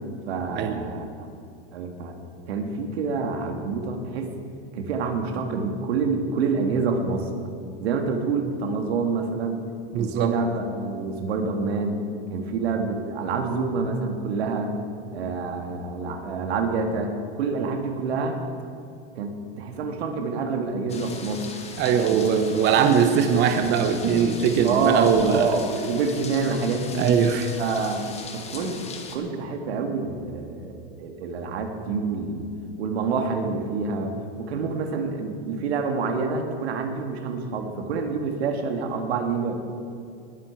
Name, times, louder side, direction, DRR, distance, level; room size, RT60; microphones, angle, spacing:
voice 1, 0.3-1.4 1.7-2.2 2.5-4.3 4.7-7.3 7.8-9.7 10.0-12.0 12.3-14.7 15.1-18.4 19.2-21.5 22.1-22.4 24.6-27.2 27.6-28.8 29.1-32.4 32.8-39.5, right 4 dB, 80° right, 5 dB, 1.9 m, -27 dB
voice 2, 9.9-10.3 21.8-25.5 27.0-27.5, right 7 dB, 35° right, 7 dB, 0.8 m, -21 dB
sound 1, 20.9-29.2, left 4 dB, 20° left, 1.4 m, -38 dB
20.0 x 8.8 x 4.6 m, 2.5 s
supercardioid pair, 130°, 31 cm